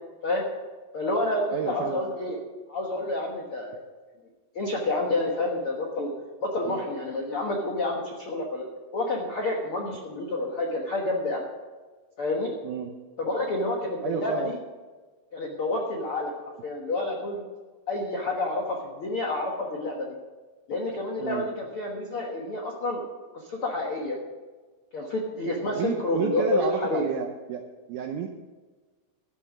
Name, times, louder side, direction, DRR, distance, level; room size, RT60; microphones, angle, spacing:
voice 1, 0.9-2.4 2.7-3.8 4.5-6.1 6.4-8.7 8.9-11.4 12.2-12.5 13.2-14.6 15.3-16.3 16.6-17.4 17.9-20.2 20.7-23.0 23.3-24.2 24.9-27.1, left 2 dB, 70° left, -1 dB, 1.3 m, -29 dB
voice 2, 1.5-2.0 6.7-6.8 12.6-12.9 14.0-14.5 21.2-21.5 25.7-28.3, right 8 dB, 85° right, 4 dB, 1.8 m, -31 dB
12.5 x 9.8 x 6.1 m, 1.3 s
omnidirectional pair, 4.6 m